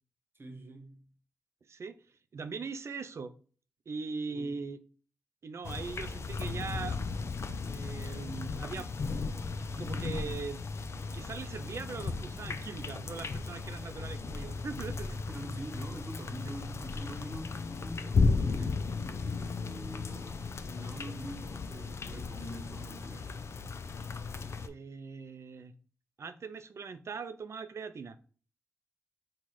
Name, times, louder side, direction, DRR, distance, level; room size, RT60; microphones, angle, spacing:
voice 1, 0.3-1.1 4.3-4.6 15.3-23.3, right 1 dB, 45° right, 1.0 m, -45 dB
voice 2, 2.3-3.3 3.9-4.8 5.4-7.0 7.5-8.9 9.6-10.6 11.1-15.1 24.6-25.7 26.2-28.2, right 4 dB, 60° right, 0.5 m, -40 dB
sound 1, 5.6-24.7, left 4 dB, 60° left, 0.4 m, -35 dB
4.2 x 2.4 x 4.7 m
cardioid pair, 50°, 5 cm